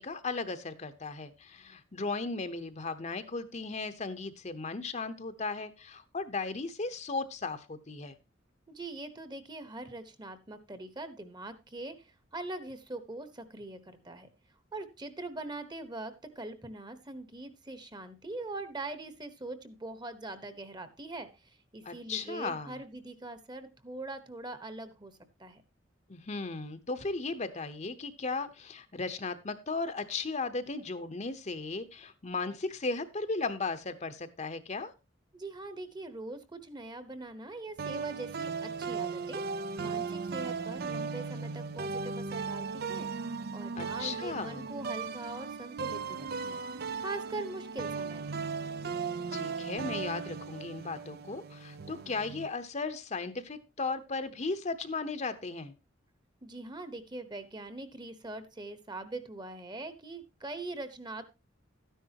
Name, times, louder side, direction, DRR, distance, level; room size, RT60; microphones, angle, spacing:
voice 1, 0.0-8.2 21.8-22.8 26.1-34.9 43.7-44.7 49.3-55.7, left 3 dB, 35° left, 10 dB, 0.9 m, -36 dB
voice 2, 8.7-14.3 14.7-25.6 35.3-39.4 39.8-43.1 43.5-46.6 47.0-48.4 56.4-61.3, right 2 dB, 20° right, 11 dB, 1.1 m, -42 dB
sound 1, 37.8-52.5, right 5 dB, 55° right, 0.6 m, -37 dB
13.0 x 10.0 x 2.9 m, 0.27 s
head